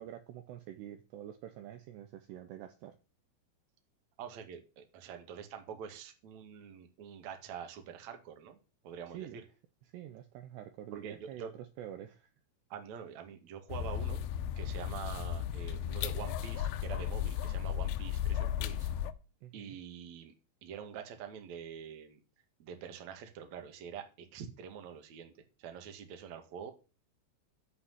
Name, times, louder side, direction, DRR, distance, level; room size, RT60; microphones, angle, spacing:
voice 1, 0.0-3.0 9.1-9.4 9.9-12.3 19.4-19.8, right 11 dB, 85° right, 7 dB, 2.5 m, -46 dB
voice 2, 4.2-8.6 8.8-9.4 10.9-11.5 12.7-14.2 14.5-18.9 19.5-20.3 20.6-22.2 22.6-26.7, right 8 dB, 55° right, 5 dB, 2.0 m, -46 dB
sound 1, 13.7-19.1, left 10 dB, 85° left, 2.4 m, -35 dB
8.5 x 5.8 x 7.9 m, 0.33 s
omnidirectional pair, 5.7 m